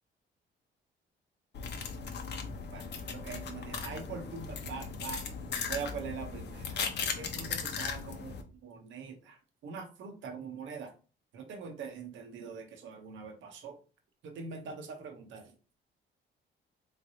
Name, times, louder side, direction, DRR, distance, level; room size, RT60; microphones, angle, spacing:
sound 1, 1.5-8.4, left 5 dB, 60° left, 0.8 m, -38 dB
voice 1, 2.7-5.2 5.7-6.8 7.2-8.4 8.6-9.4 9.6-10.9 11.3-13.7 14.2-15.5, right 5 dB, 75° right, 5 dB, 0.9 m, -43 dB
3.7 x 3.2 x 2.7 m, 0.34 s
cardioid pair, 90°, 20 cm